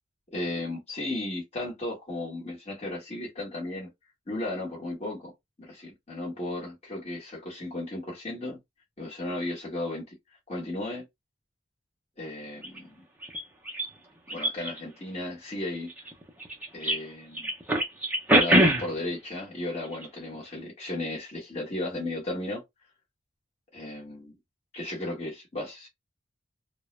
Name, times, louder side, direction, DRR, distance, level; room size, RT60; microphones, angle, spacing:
voice 1, 0.3-3.9 4.3-5.3 5.6-8.6 9.0-10.2 10.5-11.0 12.2-13.0 14.3-15.9 16.7-17.5 18.4-22.6 23.7-24.4 24.7-25.9, left 2 dB, 30° left, 1.0 m, -35 dB
sound 1, 12.6-12.8 13.2-13.9 14.3-14.8 15.9-17.0 17.3-19.1 19.8-20.1 20.3-20.4, right 1 dB, 10° right, 0.4 m, -24 dB
2.2 x 2.0 x 3.0 m
head